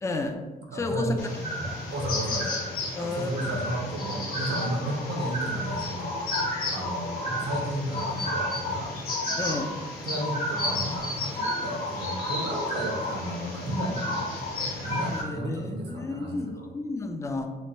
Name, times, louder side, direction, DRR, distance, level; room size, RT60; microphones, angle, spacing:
voice 1, 0.0-0.4 0.7-1.1 1.6-1.8 3.0-3.6 9.4-9.7 15.1-17.5, left 2 dB, 15° left, 5 dB, 0.3 m, -32 dB
voice 2, 0.7-1.4 1.9-2.6 3.0-8.9 10.0-14.3 14.7-16.7, right 1 dB, 70° right, 0 dB, 0.9 m, -33 dB
sound 1, 1.2-15.2, left 1 dB, 55° left, 1.0 m, -31 dB
3.2 x 2.2 x 3.9 m, 1.2 s
cardioid pair, 125°, 18 cm